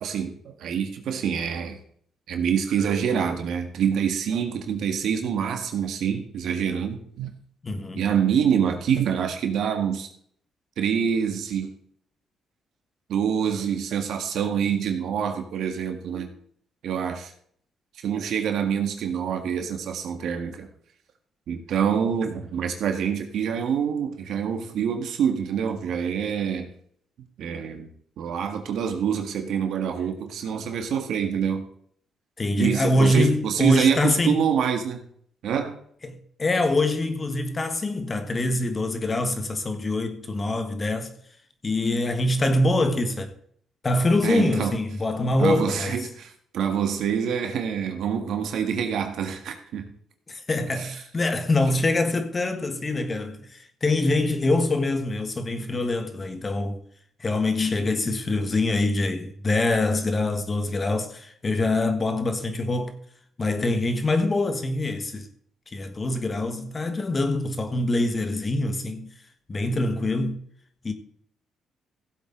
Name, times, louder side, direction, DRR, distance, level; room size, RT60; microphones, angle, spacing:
voice 1, 0.0-1.8 2.3-7.3 7.9-10.1 10.8-11.7 13.1-16.3 16.8-17.3 18.0-20.7 21.5-26.7 27.4-27.9 28.2-31.6 32.6-35.0 35.4-35.8 44.2-44.8 45.4-49.9 50.8-50.9, right 7 dB, 75° right, 1.8 m, -26 dB
voice 2, 7.6-8.0 32.4-34.4 36.0-41.1 41.6-43.3 43.8-46.0 50.3-56.8 57.2-62.9 63.4-65.3 65.7-69.1 69.5-70.4 70.8-70.9, left 2 dB, 30° left, 1.4 m, -24 dB
15.5 x 7.9 x 3.9 m
cardioid pair, 105°, 0 cm